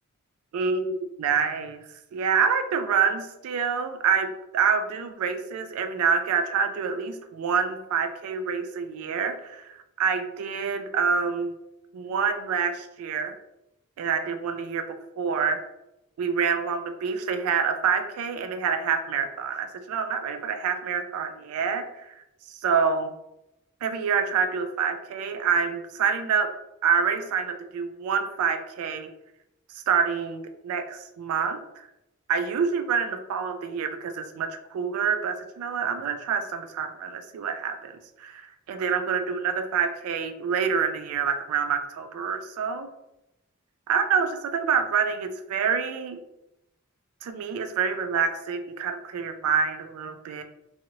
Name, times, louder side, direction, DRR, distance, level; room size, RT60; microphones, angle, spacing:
voice 1, 0.5-1.8 2.1-11.5 11.9-13.3 14.0-15.6 16.2-23.1 23.8-26.5 26.8-29.1 29.7-31.9 32.3-42.9 43.9-46.2 47.2-50.4, right 6 dB, 85° right, 12 dB, 0.3 m, -27 dB
2.7 x 2.6 x 2.9 m, 0.91 s
head